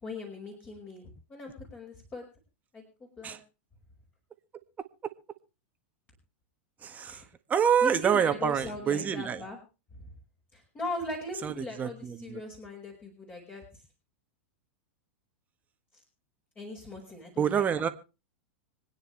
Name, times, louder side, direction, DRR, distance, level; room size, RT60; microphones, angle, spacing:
voice 1, 0.0-2.2 2.7-3.4 7.1-7.3 7.8-9.6 9.9-10.1 10.5-13.6 16.6-17.6, left 2 dB, 25° left, -1 dB, 5.5 m, -39 dB
voice 2, 6.8-7.2 7.5-9.4 11.4-12.4 17.4-17.9, right 8 dB, 25° right, 9 dB, 1.6 m, -27 dB
26.0 x 9.7 x 3.3 m, 0.32 s
hypercardioid pair, 105°, 7 cm